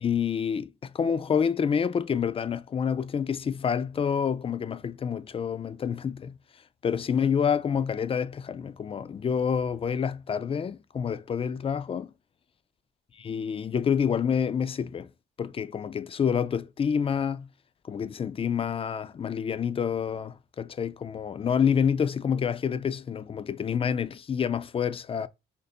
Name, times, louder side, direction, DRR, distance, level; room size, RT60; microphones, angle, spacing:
voice 1, 0.0-6.3 6.8-12.1 13.2-15.1 15.4-17.5 17.9-25.3, left 7 dB, 30° left, 0.4 m, -28 dB
3.1 x 2.6 x 4.2 m
cardioid pair, 90°, 20 cm